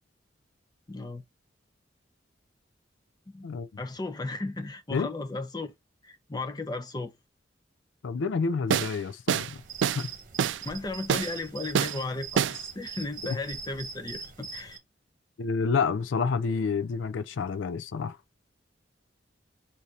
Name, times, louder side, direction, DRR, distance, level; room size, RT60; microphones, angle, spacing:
voice 1, 0.9-1.2 3.3-3.5 3.8-5.7 6.0-7.1 10.6-14.8, left 2 dB, 20° left, 0.7 m, -35 dB
voice 2, 8.0-9.6 9.9-10.1 15.4-18.2, left 5 dB, 85° left, 0.4 m, -29 dB
sound 1, 8.7-9.0 9.3-9.5 9.8-10.0 10.4-10.6 11.1-11.3 11.7-12.0 12.4-12.6, right 7 dB, 75° right, 0.3 m, -25 dB
sound 2, 9.4-14.8, right 6 dB, 45° right, 1.1 m, -42 dB
4.1 x 2.7 x 4.8 m
head